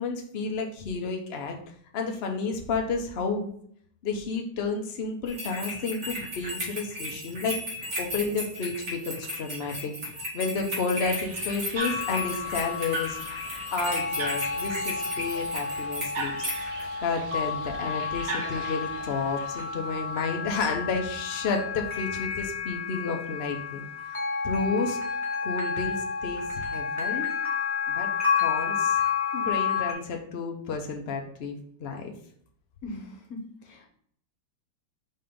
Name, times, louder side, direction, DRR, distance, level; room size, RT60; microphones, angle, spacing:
voice 1, 0.0-1.6 1.9-3.6 4.0-7.6 8.0-9.9 10.3-13.2 13.7-16.5 17.0-23.8 24.4-25.2 25.4-27.3 27.9-29.0 29.3-32.1, left 4 dB, 85° left, 2 dB, 0.5 m, -31 dB
sound 1, 5.3-16.8, left 1 dB, 40° right, 2.2 m, -35 dB
sound 2, 11.0-20.7, right 2 dB, 60° right, 1.7 m, -40 dB
sound 3, 11.7-29.9, left 6 dB, 15° right, 0.6 m, -31 dB
voice 2, 32.8-33.9, left 1 dB, 50° left, 2 dB, 1.2 m, -40 dB
5.4 x 3.4 x 5.1 m, 0.64 s
omnidirectional pair, 2.3 m